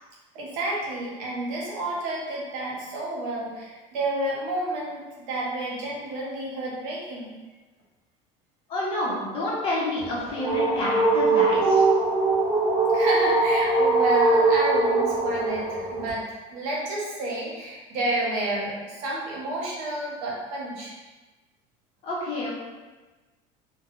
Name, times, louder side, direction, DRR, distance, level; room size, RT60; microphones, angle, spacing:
voice 1, 0.3-7.3 12.9-20.9, right 1 dB, 85° right, -4 dB, 0.9 m, -30 dB
voice 2, 8.7-11.9 22.0-22.5, left 1 dB, 35° left, -5 dB, 0.7 m, -28 dB
sound 1, 10.0-16.1, right 3 dB, 30° right, 0.8 m, -22 dB
2.2 x 2.1 x 3.0 m, 1.2 s
cardioid pair, 165°, 15 cm